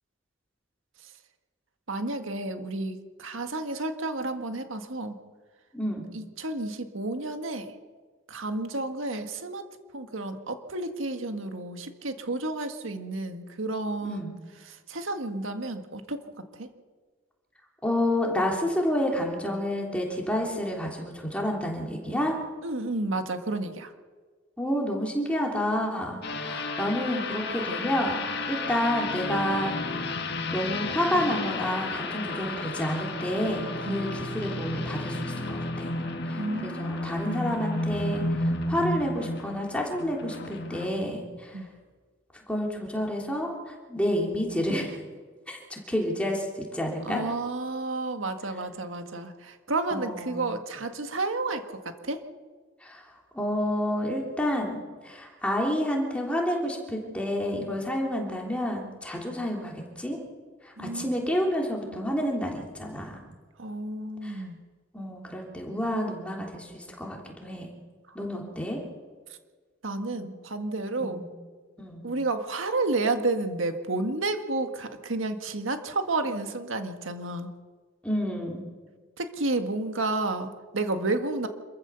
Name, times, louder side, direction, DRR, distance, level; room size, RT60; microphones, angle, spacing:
voice 1, 1.9-5.2 6.1-7.7 8.3-14.3 14.7-16.3 16.6-16.7 22.6-23.9 33.9-34.0 36.4-37.6 41.5-41.7 47.0-51.6 52.0-52.2 60.8-61.2 62.0-62.2 63.6-64.6 69.8-71.2 72.0-77.5 79.2-81.5, right 2 dB, 85° right, 7 dB, 1.8 m, -31 dB
voice 2, 5.7-6.1 14.0-14.3 17.8-22.4 24.6-30.2 30.5-35.9 36.3-41.6 42.5-45.0 45.5-47.2 49.9-50.4 52.8-53.1 53.3-60.2 60.6-63.2 64.2-64.4 64.9-67.7 68.1-68.8 71.0-71.2 71.8-72.1 78.0-78.6, equal, 5° left, -1 dB, 3.2 m, -29 dB
sound 1, 26.2-40.9, left 2 dB, 55° left, 1.9 m, -32 dB
26.5 x 14.5 x 7.0 m, 1.5 s
head